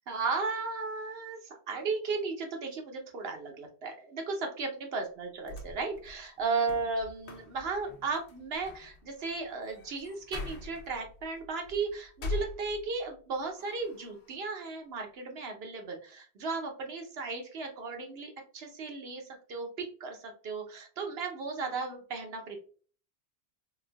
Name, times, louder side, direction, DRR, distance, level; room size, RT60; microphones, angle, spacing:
voice 1, 0.1-22.6, right 4 dB, 70° right, 3 dB, 1.0 m, -35 dB
sound 1, 5.2-13.2 13.6-14.4, left 3 dB, 80° left, 1.0 m, -43 dB
3.5 x 2.6 x 2.2 m, 0.41 s
omnidirectional pair, 1.1 m